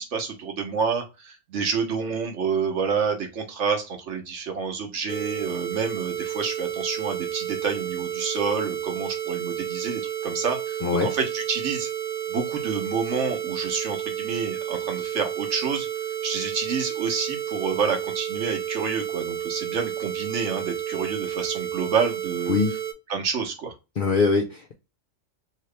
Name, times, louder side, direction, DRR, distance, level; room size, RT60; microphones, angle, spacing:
voice 1, 0.0-11.9 12.3-15.9 16.2-22.6 23.1-23.7, right 5 dB, 65° right, 4 dB, 1.1 m, -28 dB
sound 1, 5.1-22.9, right 10 dB, 90° right, 0.3 m, -31 dB
voice 2, 10.8-11.1 22.5-22.8 24.0-24.7, left 4 dB, 60° left, 1 dB, 0.5 m, -22 dB
2.9 x 2.8 x 3.2 m, 0.28 s
omnidirectional pair, 1.4 m